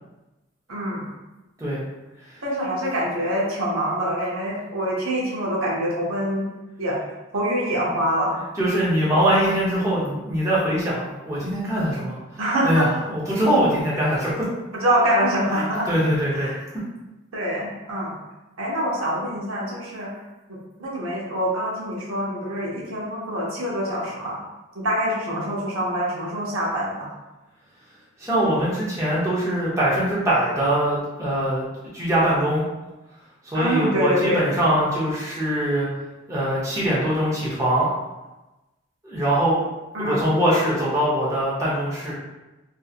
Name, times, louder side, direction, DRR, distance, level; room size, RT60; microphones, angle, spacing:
voice 1, 0.7-1.1 2.4-6.5 6.8-7.0 7.3-8.4 12.4-12.9 14.7-15.9 16.3-16.6 17.3-18.2 18.6-20.1 20.5-24.4 24.7-27.1 33.5-34.4 39.9-40.3, equal, 80° right, -4 dB, 0.8 m, -25 dB
voice 2, 8.6-14.3 15.5-16.5 28.2-31.7 31.9-32.6 33.4-35.9 36.3-37.9 39.0-39.6 40.0-42.1, right 1 dB, 15° right, -8 dB, 0.7 m, -22 dB
2.7 x 2.6 x 2.4 m, 1.0 s
head